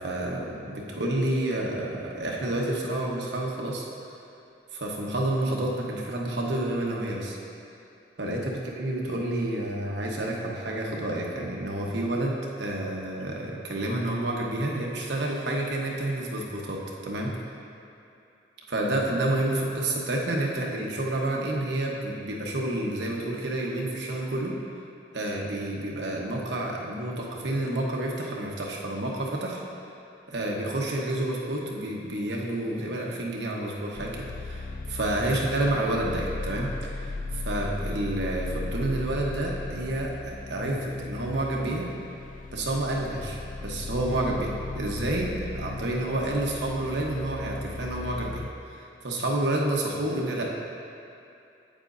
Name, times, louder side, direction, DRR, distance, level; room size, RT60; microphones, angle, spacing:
voice 1, 0.0-3.9 4.7-7.4 8.2-17.3 18.7-24.6 25.1-29.6 30.3-36.7 37.0-41.9 42.5-48.4 48.7-50.5, right 1 dB, 75° right, -2 dB, 1.1 m, -29 dB
sound 1, 33.9-48.5, left 3 dB, 45° left, 0.4 m, -36 dB
8.8 x 8.4 x 2.6 m, 2.7 s
head